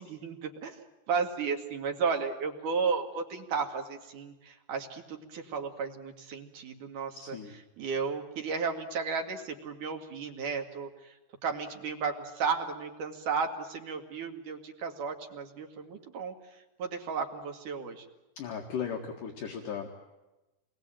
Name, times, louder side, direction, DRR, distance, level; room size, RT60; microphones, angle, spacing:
voice 1, 0.0-7.4 7.8-11.2 11.4-16.4 16.8-18.1, right 5 dB, 60° right, 4 dB, 3.5 m, -34 dB
voice 2, 7.1-7.6 18.4-19.9, left 7 dB, 65° left, 1 dB, 3.3 m, -37 dB
27.5 x 21.5 x 9.1 m, 1.0 s
omnidirectional pair, 4.4 m